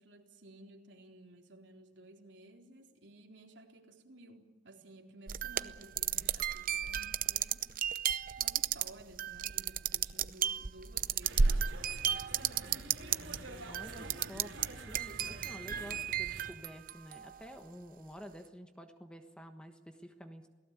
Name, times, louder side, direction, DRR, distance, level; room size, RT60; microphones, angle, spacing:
voice 1, 0.0-7.7 8.4-12.9, right 2 dB, 65° right, 1 dB, 3.9 m, -55 dB
sound 1, 5.3-13.4 13.7-14.7 14.9-17.3, right 7 dB, 45° right, 0.7 m, -33 dB
sound 2, 11.2-16.5, right 2 dB, 80° right, 3.9 m, -47 dB
voice 2, 13.6-14.5 14.8-20.5, equal, 5° left, 6 dB, 1.3 m, -50 dB
28.5 x 18.0 x 8.4 m, 1.2 s
head